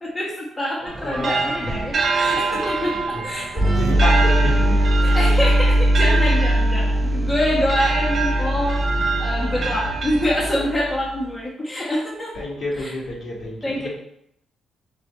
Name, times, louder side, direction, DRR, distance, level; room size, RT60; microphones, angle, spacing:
voice 1, 0.0-3.7 5.0-8.8 9.2-12.3 12.8-12.9 13.6-13.9, equal, 15° left, -5 dB, 1.1 m, -25 dB
sound 1, 0.9-10.8, right 4 dB, 45° right, 0.5 m, -26 dB
voice 2, 1.0-1.9 2.3-2.6 2.9-3.2 3.5-5.3 6.8-6.9 12.3-13.9, left 1 dB, 60° left, -5 dB, 1.7 m, -30 dB
sound 2, 3.6-11.1, equal, 25° right, 1.6 m, -20 dB
4.4 x 2.6 x 4.1 m, 0.74 s
cardioid pair, 90°, 0 cm